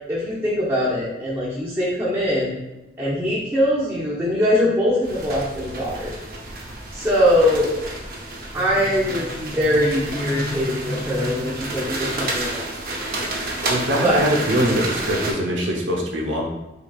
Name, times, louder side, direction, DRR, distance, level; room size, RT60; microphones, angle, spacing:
voice 1, 0.1-2.6 3.0-6.1 6.9-7.7 8.5-12.6 14.0-14.2, equal, 10° right, -8 dB, 0.7 m, -22 dB
sound 1, 5.0-15.3, right 2 dB, 50° right, 0.6 m, -30 dB
voice 2, 13.7-16.4, equal, 85° right, -1 dB, 0.8 m, -22 dB
3.7 x 3.4 x 2.3 m, 1.0 s
head